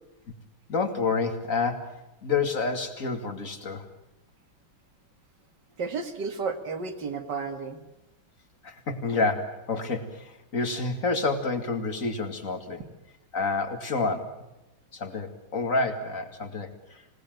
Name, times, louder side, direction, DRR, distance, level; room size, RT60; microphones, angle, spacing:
voice 1, 0.7-3.9 8.6-12.8 13.3-14.4 14.9-17.2, left 4 dB, 40° left, 7 dB, 2.6 m, -29 dB
voice 2, 5.8-7.8, right 4 dB, 55° right, 8 dB, 2.6 m, -32 dB
26.5 x 18.5 x 9.2 m, 0.99 s
omnidirectional pair, 2.3 m